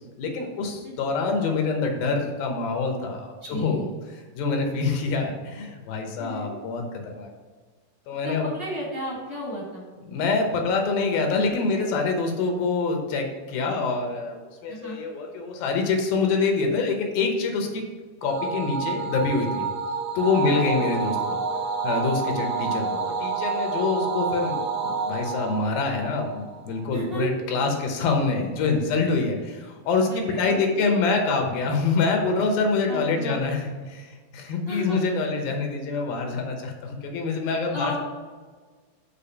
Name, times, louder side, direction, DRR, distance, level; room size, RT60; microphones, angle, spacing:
voice 1, 0.2-3.9 4.4-7.3 8.1-8.5 10.1-17.9 18.2-19.7 20.2-21.4 21.8-38.0, left 4 dB, 75° left, 3 dB, 2.8 m, -26 dB
voice 2, 3.4-3.8 6.2-6.5 8.2-9.8 14.7-15.0 20.4-20.6 26.9-27.3 30.1-30.9 32.9-33.4 34.7-35.0 37.6-38.0, equal, 20° left, -7 dB, 1.5 m, -33 dB
sound 1, 18.2-26.8, right 4 dB, 70° right, 1.9 m, -29 dB
6.9 x 4.7 x 5.7 m, 1.5 s
omnidirectional pair, 4.3 m